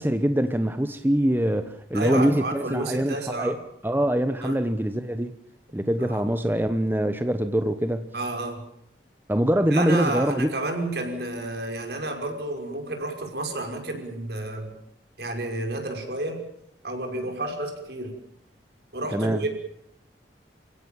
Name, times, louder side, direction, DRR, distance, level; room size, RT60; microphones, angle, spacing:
voice 1, 0.0-3.6 3.8-5.3 5.7-8.1 9.3-10.5 19.1-19.4, equal, 10° right, 1.0 m, -24 dB
voice 2, 1.9-3.6 4.4-4.6 6.0-6.2 8.1-8.6 9.7-14.7 15.2-16.4 16.8-18.2 18.9-19.5, right 2 dB, 65° right, 5.7 m, -30 dB
29.0 x 16.5 x 7.4 m
head